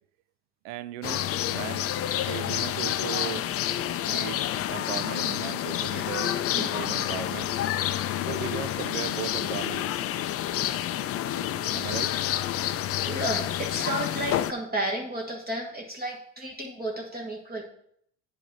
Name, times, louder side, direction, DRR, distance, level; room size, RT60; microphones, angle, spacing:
voice 1, 0.6-1.9 2.3-3.5 4.0-6.4 6.7-7.5 8.3-9.9 11.7-12.2, right 13 dB, 75° right, 0.6 m, -37 dB
sound 1, 1.0-14.5, left 12 dB, 40° left, 0.5 m, -29 dB
voice 2, 13.0-17.6, right 1 dB, 25° right, 1.5 m, -32 dB
9.8 x 4.5 x 4.0 m
hypercardioid pair, 80°, 37 cm